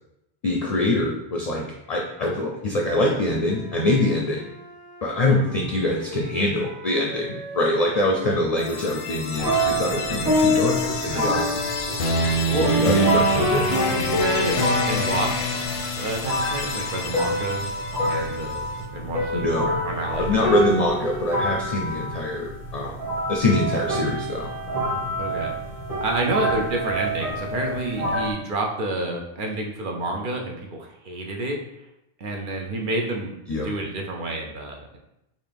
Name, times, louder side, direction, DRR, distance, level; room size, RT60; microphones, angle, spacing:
voice 1, 0.4-4.5 5.0-11.4 12.5-13.7 19.3-19.7 20.2-22.9 23.3-24.5 33.5-33.7, left 1 dB, 50° left, 0 dB, 0.5 m, -24 dB
Wind instrument woodwind instrument, 2.6-8.0 8.5-14.4, left 1 dB, 90° right, 1.5 m, -42 dB
sound 1, 8.6-18.5, left 1 dB, 90° left, 0.8 m, -27 dB
sound 2, 9.3-28.3, equal, 25° right, 1.3 m, -26 dB
voice 2, 10.9-11.6 11.9-12.0 12.5-12.7 13.4-14.6 14.9-17.7 18.1-18.7 18.9-19.4 19.8-20.7 25.2-25.5 26.0-31.6 32.2-35.0, right 2 dB, 60° right, 1 dB, 0.7 m, -29 dB
4.0 x 2.6 x 3.4 m, 0.84 s
omnidirectional pair, 1.0 m